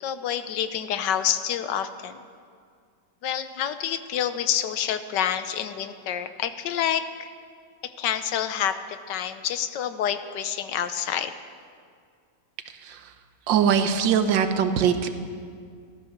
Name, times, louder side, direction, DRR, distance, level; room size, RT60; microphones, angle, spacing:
voice 1, 0.0-2.2 3.2-7.3 7.8-8.7 9.1-11.3, left 9 dB, 75° left, 11 dB, 1.3 m, -28 dB
voice 2, 13.5-15.1, right 7 dB, 80° right, 9 dB, 1.6 m, -21 dB
16.0 x 13.0 x 6.5 m, 2.2 s
omnidirectional pair, 2.0 m